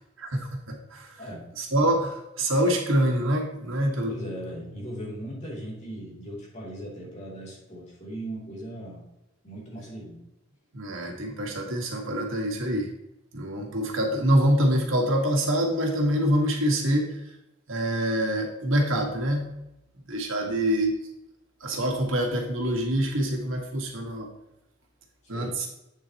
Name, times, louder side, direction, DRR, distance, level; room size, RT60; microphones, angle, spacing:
voice 1, 0.2-1.2 1.6-4.1 10.7-12.9 13.3-17.2 17.7-19.5 20.1-20.9 21.6-24.3 25.3-25.7, equal, 85° right, 1 dB, 1.7 m, -25 dB
voice 2, 1.2-1.5 4.1-9.0 9.4-10.2 20.4-20.6 25.3-25.5, right 1 dB, 35° left, -5 dB, 3.0 m, -38 dB
8.3 x 7.5 x 3.0 m, 0.90 s
head